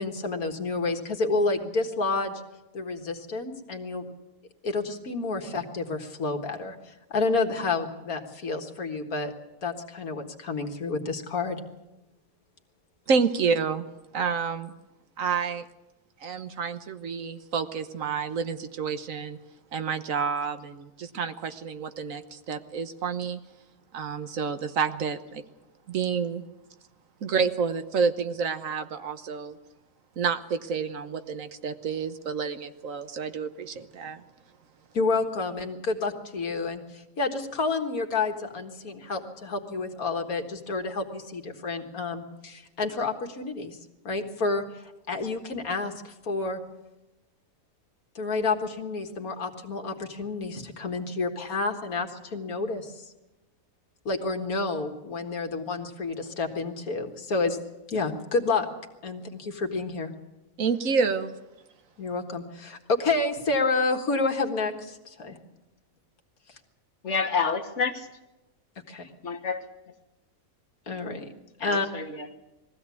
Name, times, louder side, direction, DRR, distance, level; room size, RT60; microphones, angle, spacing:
voice 1, 0.0-2.4 2.7-4.0 4.6-9.3 9.6-11.6 34.9-43.8 44.0-46.6 48.2-53.1 54.1-57.6 57.9-58.7 59.0-60.1 62.0-65.4 68.9-69.1 70.9-71.3 71.6-71.9, left 3 dB, 85° left, 4 dB, 2.1 m, -29 dB
voice 2, 13.1-13.8 14.1-14.7 15.2-15.6 16.2-19.4 19.7-23.4 23.9-25.4 25.9-26.4 27.2-29.6 30.2-34.2 60.6-61.3, right 5 dB, 70° right, 9 dB, 1.4 m, -29 dB
voice 3, 67.0-68.1 69.2-69.7 71.6-72.3, left 5 dB, 55° left, 4 dB, 1.8 m, -28 dB
21.0 x 15.5 x 8.4 m, 1.0 s
omnidirectional pair, 1.5 m